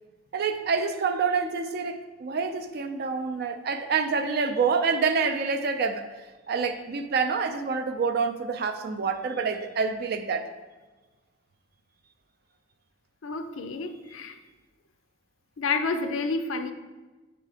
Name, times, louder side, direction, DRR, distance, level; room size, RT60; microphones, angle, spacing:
voice 1, 0.3-6.1 6.5-10.5, right 5 dB, 50° right, 7 dB, 0.4 m, -27 dB
voice 2, 13.2-14.4 15.6-16.7, left 4 dB, 85° left, 8 dB, 0.5 m, -29 dB
6.6 x 3.8 x 4.9 m, 1.2 s
head